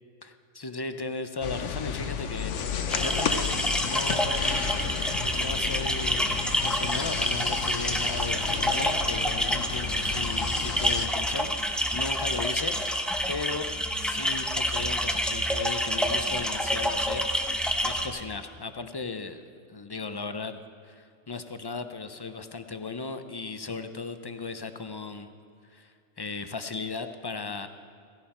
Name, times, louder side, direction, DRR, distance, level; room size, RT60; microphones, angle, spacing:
voice 1, 0.2-3.5 3.8-4.7 5.3-6.3 6.6-17.3 17.8-19.4 19.7-25.3 25.7-27.7, left 4 dB, 35° left, 9 dB, 0.4 m, -37 dB
sound 1, 1.4-11.1, left 7 dB, 80° left, 1.1 m, -32 dB
sound 2, 2.9-18.1, equal, ahead, 0.7 m, -28 dB
16.5 x 16.0 x 4.3 m, 2.3 s
omnidirectional pair, 1.2 m